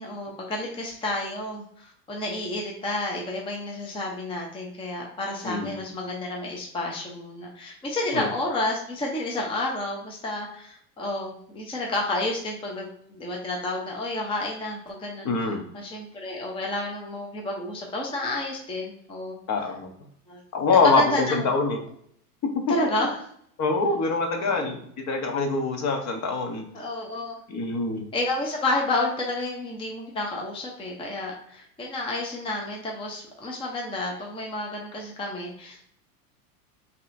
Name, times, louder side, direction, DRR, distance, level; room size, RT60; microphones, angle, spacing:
voice 1, 0.0-19.4 20.3-20.4 20.8-21.4 22.7-23.2 24.5-24.7 26.7-27.4 28.1-35.9, left 2 dB, 10° left, 0 dB, 0.7 m, -30 dB
voice 2, 5.4-5.8 8.1-8.3 15.2-15.6 19.5-19.9 20.5-21.8 23.6-26.6 27.5-28.0, left 3 dB, 35° left, 4 dB, 1.0 m, -24 dB
5.4 x 3.0 x 2.6 m, 0.68 s
hypercardioid pair, 110°, 47 cm